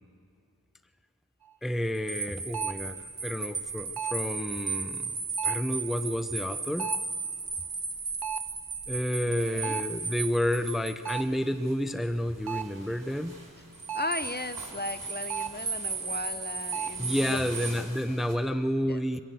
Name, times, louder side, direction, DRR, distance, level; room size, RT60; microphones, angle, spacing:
sound 1, 1.4-1.5 2.5-2.9 4.0-4.3 5.4-5.8 6.8-7.2 8.2-8.6 9.6-10.0 11.1-11.4 12.5-12.8 13.9-14.3 15.3-15.7 16.7-17.1, right 9 dB, 90° right, 0.6 m, -35 dB
voice 1, 1.6-5.2 5.4-6.9 8.9-13.4 17.0-19.2, equal, ahead, 10 dB, 0.7 m, -30 dB
sound 2, 1.9-11.2 13.7-17.7, right 4 dB, 70° right, 1.6 m, -35 dB
voice 2, 9.2-9.8 13.9-17.7 18.8-19.0, left 2 dB, 25° left, 11 dB, 0.9 m, -37 dB
sound 3, 9.4-18.3, right 1 dB, 55° right, 5.2 m, -49 dB
25.0 x 16.0 x 7.8 m, 2.5 s
wide cardioid pair, 45°, 37 cm